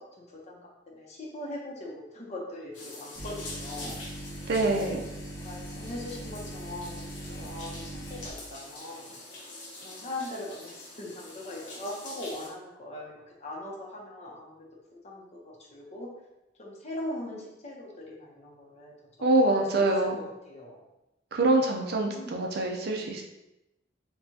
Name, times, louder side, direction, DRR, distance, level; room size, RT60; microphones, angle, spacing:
voice 1, 0.3-4.0 4.6-5.0 5.4-7.1 7.4-9.2 9.8-16.1 16.6-18.9 19.5-19.9 20.1-20.8 21.8-22.4, left 1 dB, 40° left, -3 dB, 0.8 m, -41 dB
sound 1, 2.7-12.5, left 2 dB, 85° left, 0.9 m, -45 dB
sound 2, 3.2-8.3, right 1 dB, 10° left, 0.8 m, -41 dB
voice 2, 4.5-5.0 19.2-20.2 21.3-23.2, right 2 dB, 60° right, 1 dB, 0.6 m, -25 dB
4.5 x 2.3 x 2.8 m, 0.92 s
head